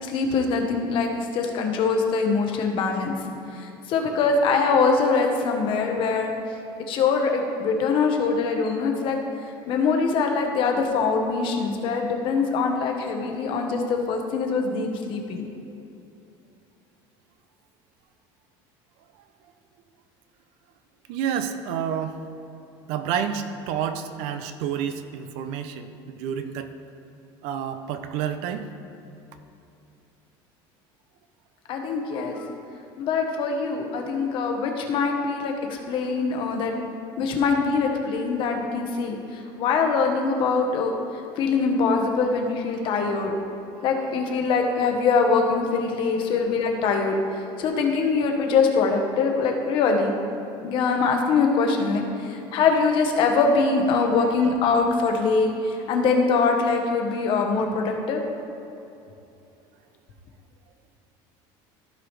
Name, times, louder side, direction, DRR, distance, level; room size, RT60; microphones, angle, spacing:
voice 1, 0.0-3.1 3.5-6.3 6.9-9.2 9.7-15.5 31.7-32.4 33.0-36.7 37.2-40.9 41.4-43.3 43.8-50.1 50.6-58.2, left 4 dB, 50° left, 3 dB, 1.1 m, -23 dB
voice 2, 21.1-22.1 22.9-26.7 27.4-28.6 42.8-42.9 44.1-44.2 52.5-52.6 54.0-54.1, right 8 dB, 70° right, 9 dB, 0.6 m, -29 dB
14.5 x 4.9 x 3.3 m, 2.8 s
cardioid pair, 150°, 11 cm